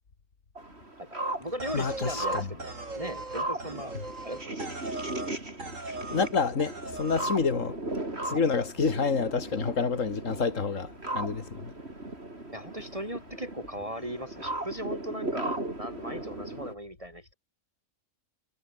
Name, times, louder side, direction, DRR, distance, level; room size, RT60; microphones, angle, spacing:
sound 1, 0.6-16.7, right 2 dB, 55° right, 5.7 m, -37 dB
voice 1, 1.0-4.0 4.2-4.7 12.5-17.3, equal, 25° right, 7.3 m, -38 dB
sound 2, 1.6-5.3 5.6-6.3 6.6-7.3, right 2 dB, 85° right, 4.9 m, -39 dB
voice 2, 1.7-2.5 6.1-7.8 8.2-11.7, left 5 dB, 85° left, 2.4 m, -28 dB
omnidirectional pair, 1.3 m